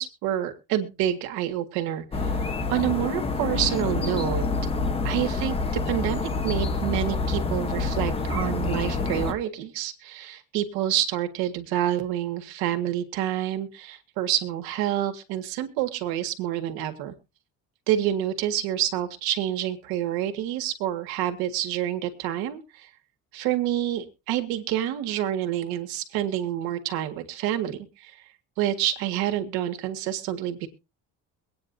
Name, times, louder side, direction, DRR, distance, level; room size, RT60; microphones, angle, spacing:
voice 1, 0.0-4.4 5.0-17.1 17.9-22.9 23.3-28.1 28.6-30.7, right 12 dB, 85° right, 7 dB, 1.9 m, -28 dB
sound 1, 2.1-9.3, left 3 dB, 15° left, 1.0 m, -27 dB
23.0 x 9.5 x 2.7 m, 0.29 s
cardioid pair, 160°, 35 cm